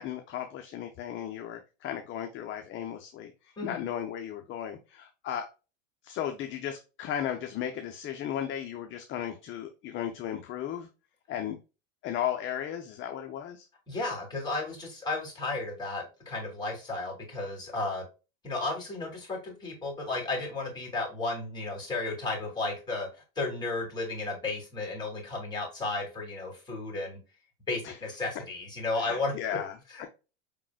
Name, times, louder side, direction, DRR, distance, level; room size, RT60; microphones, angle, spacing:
voice 1, 0.0-3.3 3.6-5.5 6.0-10.9 11.3-11.6 12.0-13.6 27.8-28.0 28.9-30.1, left 10 dB, 30° left, 0.6 m, -35 dB
voice 2, 13.9-18.0 18.4-23.1 23.4-27.2 27.7-29.6 29.9-30.1, left 3 dB, 10° left, 2.5 m, -33 dB
5.0 x 3.8 x 2.2 m
supercardioid pair, 125°, 38 cm